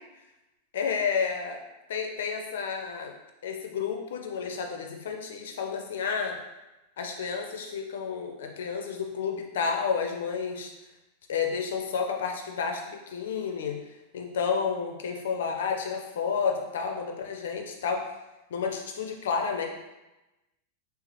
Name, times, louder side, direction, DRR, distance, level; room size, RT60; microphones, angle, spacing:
voice 1, 0.7-1.6 1.9-3.1 3.4-6.4 7.0-10.7 11.3-13.8 14.1-18.1 18.5-19.7, left 6 dB, 60° left, 3 dB, 0.5 m, -31 dB
3.4 x 2.8 x 3.0 m, 1.0 s
figure-of-eight pair, 90°, 0 cm